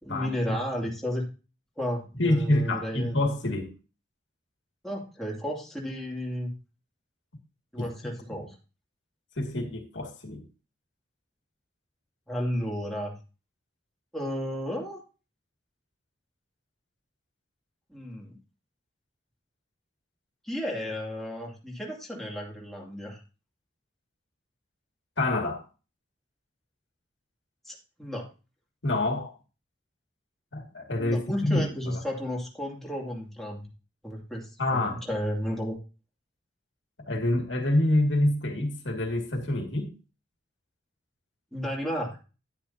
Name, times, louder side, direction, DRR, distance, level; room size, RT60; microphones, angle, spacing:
voice 1, 0.0-1.3 1.8-3.2 4.8-6.5 7.7-8.6 12.3-13.1 14.1-15.0 17.9-18.4 20.4-23.2 27.7-28.3 31.0-33.7 34.0-35.8 41.5-42.2, equal, ahead, 2.6 m, -33 dB
voice 2, 2.2-3.7 7.8-7.9 9.4-10.4 25.2-25.6 28.8-29.3 30.5-31.7 34.6-35.0 37.0-39.9, left 1 dB, 75° left, 2.2 m, -27 dB
10.5 x 10.0 x 2.8 m
head